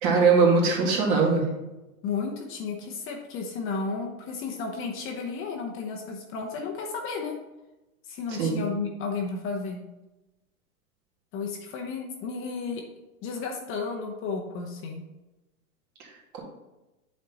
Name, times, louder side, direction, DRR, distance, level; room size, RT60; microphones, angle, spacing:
voice 1, 0.0-1.5 8.3-8.6 16.3-16.4, right 4 dB, 45° right, -1 dB, 2.3 m, -21 dB
voice 2, 2.0-7.3 8.1-9.8 11.3-12.8 13.2-15.0, left 4 dB, 30° left, 1 dB, 0.9 m, -33 dB
8.4 x 4.4 x 4.0 m, 1.0 s
hypercardioid pair, 125°, 44 cm